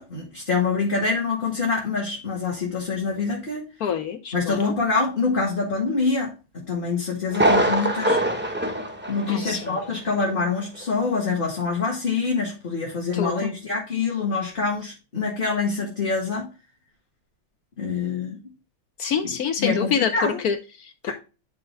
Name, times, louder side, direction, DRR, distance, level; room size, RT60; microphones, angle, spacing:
voice 1, 0.0-3.7 4.3-8.2 9.1-16.5 17.8-18.4 19.2-20.4 21.1-21.2, left 4 dB, 30° left, -3 dB, 1.6 m, -25 dB
voice 2, 3.8-4.7 9.2-9.6 13.1-13.5 19.0-21.1, left 7 dB, 65° left, 9 dB, 0.9 m, -26 dB
Thunder, 7.3-9.9 10.2-10.3 10.8-10.9, right 1 dB, 15° right, 0.3 m, -23 dB
10.5 x 3.8 x 3.2 m, 0.31 s
omnidirectional pair, 2.2 m